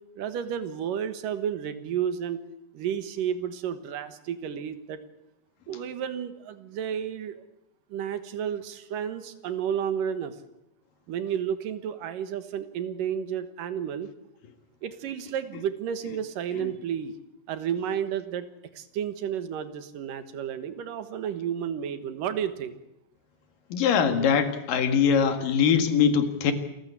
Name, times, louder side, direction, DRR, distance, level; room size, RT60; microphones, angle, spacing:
voice 1, 0.2-2.5 2.7-5.0 5.7-7.4 7.9-10.3 11.1-14.1 14.8-17.1 17.5-18.5 18.8-22.8, right 8 dB, 75° right, 11 dB, 3.0 m, -31 dB
voice 2, 23.7-26.5, left 7 dB, 75° left, 9 dB, 3.5 m, -22 dB
27.5 x 14.5 x 8.2 m, 0.92 s
omnidirectional pair, 3.9 m